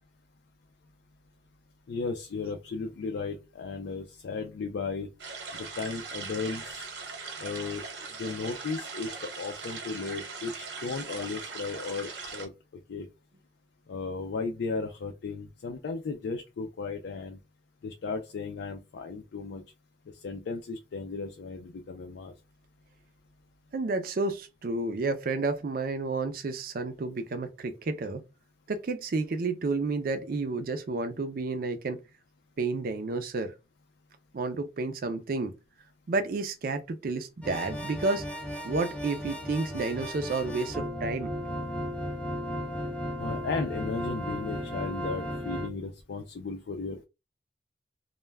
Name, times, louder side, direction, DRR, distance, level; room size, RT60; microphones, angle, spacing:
voice 1, 1.9-5.1 5.6-6.8 7.4-7.8 8.2-12.5 12.9-13.1 13.9-17.4 17.8-19.6 20.2-22.3 43.2-47.0, left 4 dB, 75° left, 0.4 m, -35 dB
sound 1, 5.2-12.5, right 4 dB, 80° right, 0.9 m, -40 dB
voice 2, 23.7-28.2 28.7-32.0 32.6-33.5 34.3-35.5 36.1-38.3 38.6-41.3, right 3 dB, 55° right, 0.4 m, -31 dB
sound 2, 37.4-45.7, equal, 5° left, 0.5 m, -35 dB
2.2 x 2.1 x 3.3 m
head